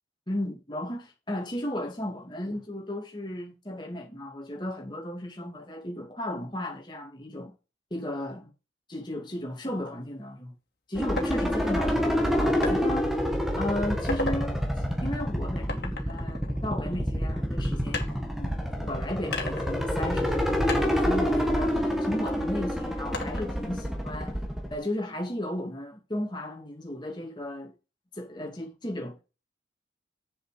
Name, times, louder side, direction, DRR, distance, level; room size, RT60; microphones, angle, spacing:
voice 1, 0.3-7.5 7.9-8.5 8.9-10.6 10.9-13.1 13.6-14.6 15.0-18.1 18.4-24.4 24.7-27.7 28.2-29.2, left 1 dB, 25° left, 2.8 m, -35 dB
sound 1, 11.0-24.7, equal, ahead, 1.8 m, -28 dB
sound 2, 11.2-11.3 12.6-12.8 13.3-13.6 13.9-14.4 15.7-17.2 17.9-18.8 19.3-20.4 20.7-22.3 23.1-23.7, left 3 dB, 55° left, 2.7 m, -36 dB
7.6 x 7.4 x 6.8 m
head